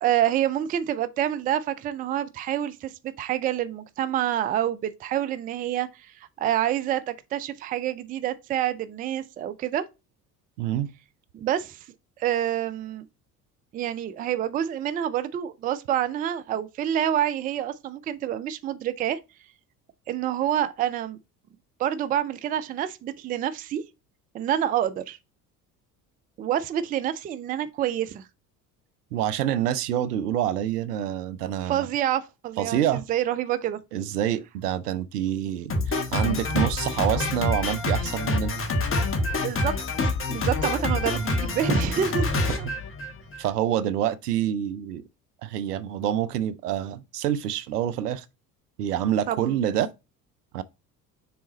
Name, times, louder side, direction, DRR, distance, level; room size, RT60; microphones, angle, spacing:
voice 1, 0.0-6.1 6.4-9.8 11.3-11.8 12.2-13.1 13.7-19.2 20.1-21.2 21.8-23.8 24.3-25.2 26.4-28.2 31.7-33.8 39.4-39.8 40.0-42.7 49.3-49.6, right 11 dB, 20° right, 0.4 m, -27 dB
voice 2, 10.6-10.9 29.1-31.9 32.6-33.1 33.9-38.5 42.6-42.7 43.4-45.0 45.4-48.3 48.8-49.9 50.5-50.6, right 11 dB, 70° right, 0.7 m, -27 dB
Drum kit, 35.7-43.5, left 2 dB, 25° left, 1.3 m, -26 dB
6.7 x 3.8 x 3.9 m
figure-of-eight pair, 60°, 49 cm